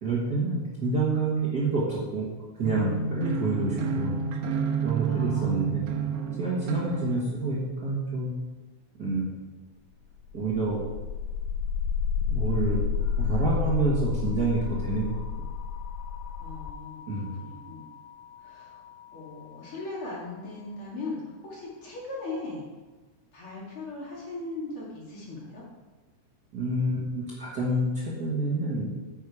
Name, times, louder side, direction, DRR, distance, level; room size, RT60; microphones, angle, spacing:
voice 1, 0.0-2.3 2.6-4.2 4.8-5.8 6.4-8.3 9.0-9.2 10.3-10.8 12.3-12.8 13.2-15.2 17.1-17.3 26.5-28.9, right 2 dB, 40° right, -6 dB, 1.6 m, -28 dB
sound 1, 2.6-7.2, right 6 dB, 70° right, 1.9 m, -30 dB
voice 2, 5.0-5.6 16.4-17.0 17.4-17.9 18.4-18.8 19.1-22.7 23.3-25.6, left 3 dB, 50° left, -5 dB, 2.9 m, -38 dB
sound 2, 10.1-20.1, left 6 dB, 90° left, 2.0 m, -31 dB
9.1 x 6.6 x 4.8 m, 1.2 s
omnidirectional pair, 3.4 m